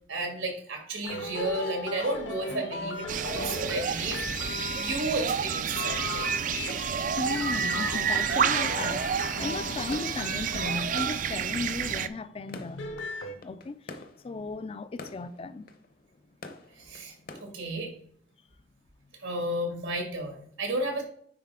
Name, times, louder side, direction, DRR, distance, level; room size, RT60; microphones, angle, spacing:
voice 1, 0.1-4.2 4.8-6.3 16.8-17.1 17.4-17.9 19.2-21.0, right 1 dB, 90° right, 2.2 m, -32 dB
sound 1, 1.0-11.5 12.6-13.3, left 3 dB, 75° left, 1.0 m, -38 dB
sound 2, 3.1-12.1, right 7 dB, 45° right, 0.3 m, -29 dB
voice 2, 7.1-15.7, left 3 dB, 30° left, 0.4 m, -36 dB
sound 3, 8.8-17.4, left 3 dB, 50° left, 0.8 m, -48 dB
9.5 x 4.2 x 3.6 m
head